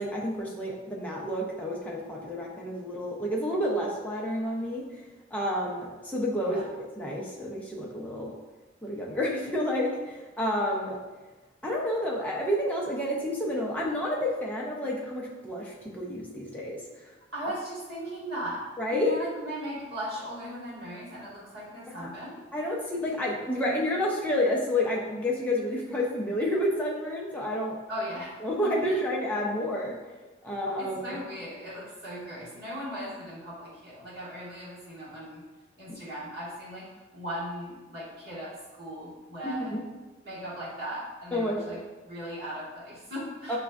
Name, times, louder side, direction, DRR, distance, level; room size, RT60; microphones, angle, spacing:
voice 1, 0.0-5.0 5.3-6.6 7.0-8.3 8.8-11.0 11.6-16.8 18.8-19.1 21.9-22.1 22.5-27.7 28.4-30.0 30.4-31.2 35.9-36.0 39.4-39.8 41.3-41.8 43.5-43.6, left 1 dB, 10° left, -4 dB, 0.5 m, -30 dB
voice 2, 17.3-18.6 18.9-22.4 27.9-28.3 28.9-29.0 30.8-35.4 35.8-36.9 37.1-39.8 40.2-43.6, equal, 55° right, -8 dB, 1.4 m, -38 dB
6.0 x 2.2 x 2.3 m, 1.2 s
head